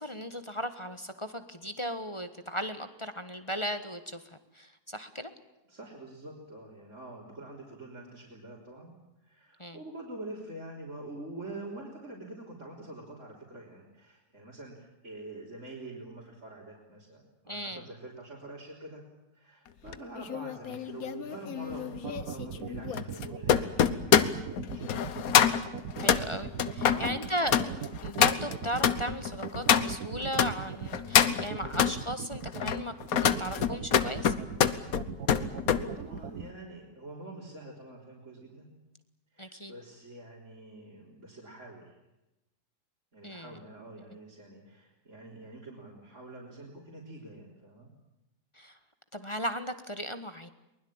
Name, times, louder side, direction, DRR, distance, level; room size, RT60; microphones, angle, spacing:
voice 1, 0.0-5.3 9.6-9.8 17.5-17.8 26.0-27.7 28.0-34.3 39.4-39.7 43.2-43.6 48.5-48.8 49.1-50.5, equal, 20° left, 9 dB, 1.4 m, -36 dB
voice 2, 5.7-8.9 9.2-19.0 19.3-25.2 26.8-27.9 35.5-38.7 39.3-42.0 43.1-47.9, right 2 dB, 50° right, -4 dB, 4.3 m, -45 dB
sound 1, 19.9-30.5 30.9-32.0 32.5-35.8 36.2-36.5, left 8 dB, 65° left, 1.4 m, -26 dB
sound 2, 21.7-36.4, right 7 dB, 70° right, 1.7 m, -39 dB
23.0 x 20.5 x 8.9 m, 0.94 s
omnidirectional pair, 1.7 m